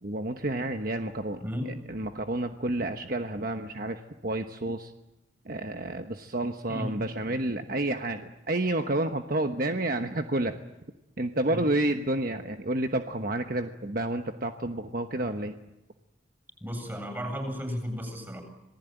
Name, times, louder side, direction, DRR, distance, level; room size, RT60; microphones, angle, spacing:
voice 1, 0.0-1.4 1.9-4.9 5.4-10.5 11.2-15.5, right 1 dB, 50° right, 6 dB, 1.2 m, -30 dB
voice 2, 1.4-1.8 6.7-7.4 11.5-11.7 16.6-18.4, equal, 15° right, 5 dB, 7.5 m, -34 dB
27.0 x 19.5 x 9.2 m, 0.95 s
head